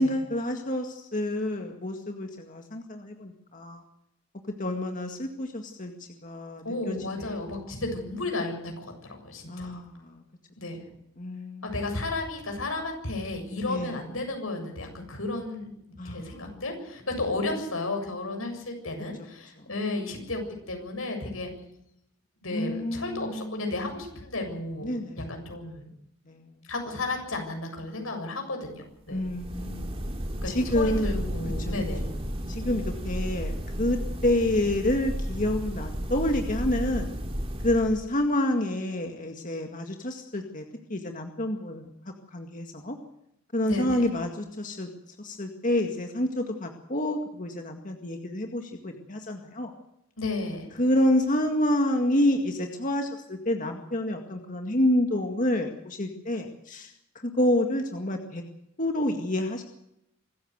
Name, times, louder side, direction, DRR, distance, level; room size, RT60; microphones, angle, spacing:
voice 1, 0.0-3.8 4.6-7.5 9.5-10.2 11.2-11.9 13.7-13.9 16.0-16.6 22.5-23.6 24.8-25.3 26.3-26.5 29.1-30.0 30.5-31.3 31.6-31.7 32.5-37.1 37.6-40.6 40.9-43.0 43.5-44.9 45.2-49.7 50.8-58.4 58.8-59.6, left 1 dB, 40° left, 3 dB, 2.0 m, -28 dB
voice 2, 6.6-9.8 10.6-10.8 11.6-15.7 16.0-20.4 20.7-21.5 22.4-24.9 25.2-25.9 26.6-29.2 30.4-32.1 43.6-44.0 50.2-50.7, left 2 dB, 85° left, 4 dB, 7.3 m, -33 dB
sound 1, 29.1-38.2, equal, 30° right, 2.6 m, -33 dB
25.5 x 14.5 x 8.1 m, 0.79 s
head